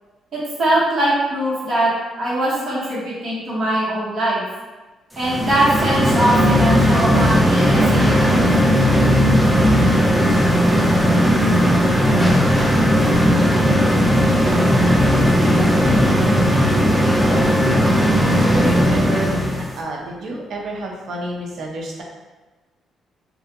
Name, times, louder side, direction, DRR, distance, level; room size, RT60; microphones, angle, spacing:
voice 1, 0.3-4.4 5.2-8.5, right 1 dB, 50° right, -7 dB, 1.1 m, -21 dB
sound 1, 5.2-19.7, equal, 5° right, 0.4 m, -16 dB
voice 2, 18.2-22.0, right 1 dB, 70° right, -1 dB, 0.5 m, -29 dB
2.4 x 2.2 x 2.7 m, 1.2 s
cardioid pair, 90°, 0 cm